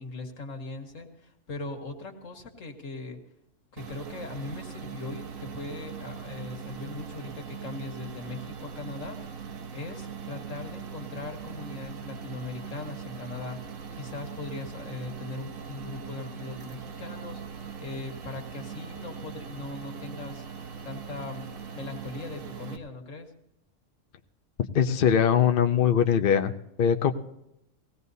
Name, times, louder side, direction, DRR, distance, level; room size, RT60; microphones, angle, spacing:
voice 1, 0.0-3.2 3.7-20.4 20.8-21.5 21.7-23.3, left 3 dB, 75° left, 3 dB, 1.9 m, -40 dB
sound 1, 3.8-22.8, right 6 dB, 75° right, 1.3 m, -41 dB
voice 2, 24.7-26.5 26.8-27.1, left 8 dB, 50° left, 7 dB, 0.7 m, -21 dB
20.0 x 17.0 x 2.7 m, 0.83 s
omnidirectional pair, 1.4 m